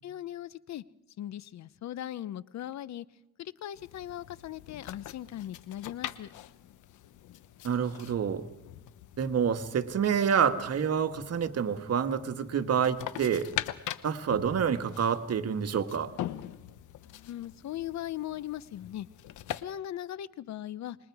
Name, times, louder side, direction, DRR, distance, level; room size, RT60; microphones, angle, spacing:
voice 1, 0.0-0.8 1.2-3.0 3.4-6.3 17.1-19.1 19.6-21.0, left 12 dB, 65° left, 18 dB, 0.8 m, -39 dB
sound 1, 3.8-19.6, left 12 dB, 80° left, 1.1 m, -43 dB
voice 2, 7.6-8.5 9.2-13.5 14.0-16.1, right 7 dB, 55° right, 8 dB, 1.7 m, -28 dB
26.5 x 22.0 x 4.8 m, 0.91 s
cardioid pair, 90°, 30 cm